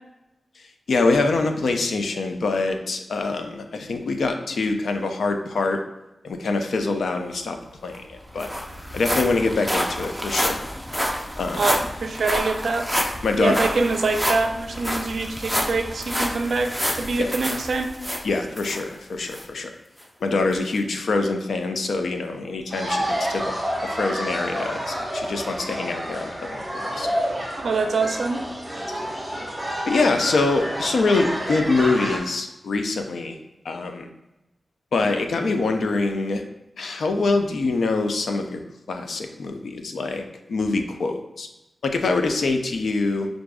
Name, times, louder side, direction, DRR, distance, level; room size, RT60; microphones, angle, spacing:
voice 1, 0.9-5.8 6.2-7.6 7.8-8.5 8.9-10.6 11.4-11.6 13.2-13.6 17.2-17.3 18.2-19.7 20.2-23.4 23.8-27.1 28.9-29.0 29.9-33.4 33.6-34.1 34.9-36.4 36.8-38.6 38.9-40.2 40.5-41.5 41.8-43.3, left 3 dB, 90° left, 5 dB, 0.4 m, -24 dB
sound 1, 7.6-7.7 7.9-18.8 19.3-19.4 20.0-20.1, equal, 5° left, 0.5 m, -28 dB
voice 2, 11.6-12.9 13.4-17.9 27.6-28.4, right 3 dB, 75° right, 5 dB, 0.4 m, -24 dB
sound 2, 22.7-32.2, equal, 10° right, 1.1 m, -29 dB
6.0 x 2.5 x 2.3 m, 0.94 s
wide cardioid pair, 85°, 0 cm